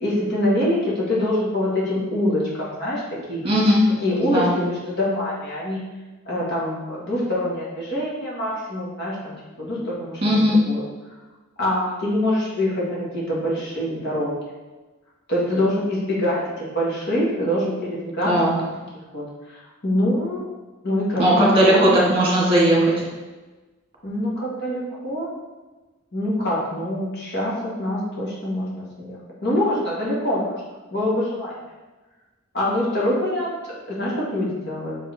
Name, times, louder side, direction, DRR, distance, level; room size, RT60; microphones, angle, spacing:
voice 1, 0.0-3.0 3.3-3.4 4.0-5.8 6.3-10.8 11.6-14.3 15.3-18.7 19.1-19.2 19.5-20.5 20.8-21.9 24.0-25.3 26.1-27.5 27.8-30.5 30.9-31.6 32.5-35.0, left 1 dB, 55° left, -6 dB, 1.8 m, -25 dB
voice 2, 3.4-3.8 4.2-4.5 10.2-10.6 18.3-18.5 21.2-22.9, right 1 dB, 30° right, -4 dB, 1.8 m, -17 dB
6.1 x 4.7 x 3.5 m, 1.2 s
head